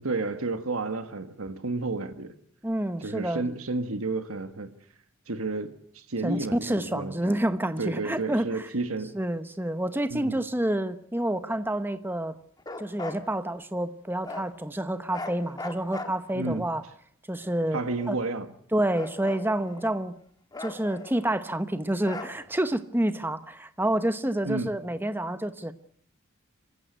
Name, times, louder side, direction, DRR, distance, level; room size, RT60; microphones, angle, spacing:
voice 1, 0.0-2.3 3.0-4.7 5.3-7.4 7.8-9.1 10.1-10.4 16.3-16.6 17.7-18.5 24.4-24.7, right 3 dB, 80° right, 1.5 m, -31 dB
voice 2, 2.6-3.4 6.2-8.4 9.1-12.3 12.8-16.8 17.3-17.8 18.1-18.2 18.7-20.2 20.6-25.7, right 1 dB, 10° right, 0.9 m, -28 dB
Bark, 12.6-13.2 14.2-14.5 15.1-16.6 17.4-18.4 18.9-20.0 20.5-21.5 22.0-22.7, left 2 dB, 20° left, 1.5 m, -40 dB
26.5 x 15.5 x 8.0 m
head